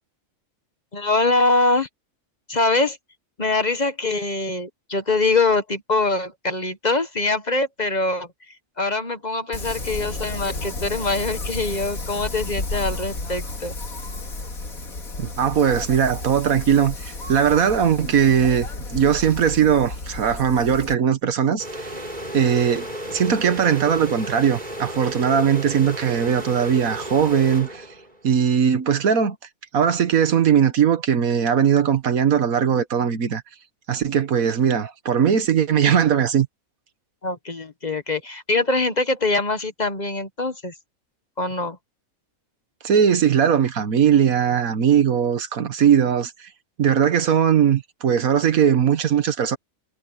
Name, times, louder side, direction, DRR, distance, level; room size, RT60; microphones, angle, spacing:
voice 1, 0.9-1.9 2.5-3.0 3.4-8.3 8.8-13.7 37.2-40.7 41.4-41.8, left 3 dB, 35° left, 1.2 m, -23 dB
Wind, 9.5-20.9, left 2 dB, 85° left, 3.1 m, -32 dB
voice 2, 15.2-21.9 22.3-27.8 28.2-29.3 29.7-33.4 33.9-36.5 42.8-46.3 46.8-49.6, right 8 dB, 85° right, 1.7 m, -19 dB
sound 1, 21.6-28.3, equal, 30° right, 5.7 m, -33 dB
omnidirectional pair, 1.4 m